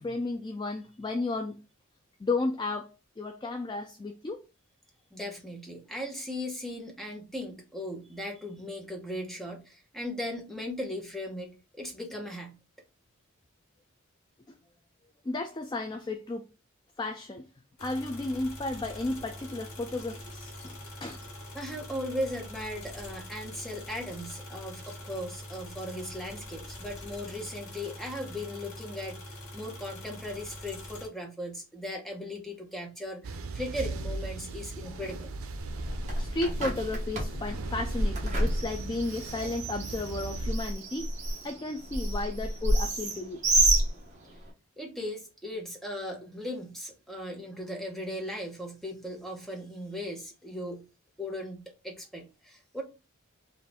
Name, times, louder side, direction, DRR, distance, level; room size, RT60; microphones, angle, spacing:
voice 1, 0.0-1.6 2.2-4.4 14.5-14.6 15.2-16.4 17.0-17.4 17.8-21.2 34.8-34.9 36.2-41.1 41.4-43.4, left 2 dB, 20° left, 0.3 m, -33 dB
voice 2, 5.1-12.6 21.5-35.3 44.8-50.8 51.2-52.8, left 1 dB, ahead, 0.9 m, -38 dB
sound 1, 17.8-31.1, left 1 dB, 85° left, 1.5 m, -44 dB
sound 2, 33.2-40.5, right 3 dB, 75° right, 0.6 m, -38 dB
Bird, 35.6-44.5, right 1 dB, 35° right, 1.3 m, -30 dB
4.1 x 2.5 x 3.5 m
head